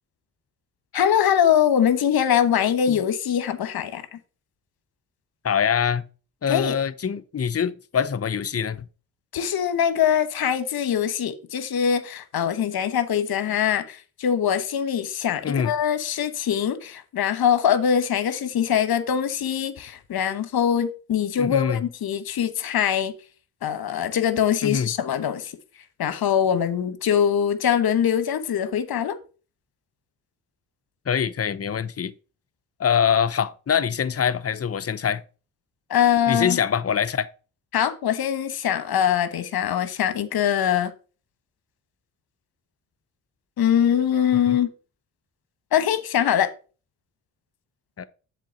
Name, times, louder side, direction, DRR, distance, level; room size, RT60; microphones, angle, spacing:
voice 1, 0.9-4.0 6.5-6.7 9.3-23.1 23.6-25.5 26.0-29.2 35.9-36.6 37.7-40.9 43.6-44.7 45.7-46.5, left 9 dB, 55° left, 1.2 m, -23 dB
voice 2, 5.4-6.1 6.4-8.9 15.4-15.7 21.4-21.9 24.6-24.9 31.1-32.1 32.8-35.2 36.3-37.3 44.5-44.6 48.0-48.1, left 7 dB, 35° left, 0.8 m, -24 dB
7.5 x 3.8 x 6.4 m
hypercardioid pair, 45°, 43 cm